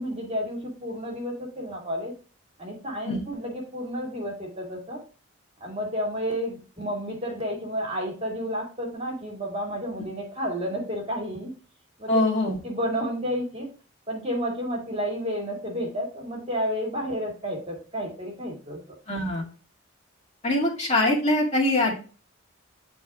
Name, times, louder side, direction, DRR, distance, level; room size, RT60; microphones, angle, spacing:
voice 1, 0.0-2.1 2.6-5.0 5.6-11.5 12.0-12.1 12.6-13.7 14.1-18.8, equal, 30° right, -2 dB, 2.7 m, -31 dB
voice 2, 12.1-12.6 19.1-19.4 20.4-21.9, left 1 dB, 35° left, -2 dB, 2.2 m, -23 dB
10.0 x 4.4 x 2.4 m, 0.36 s
head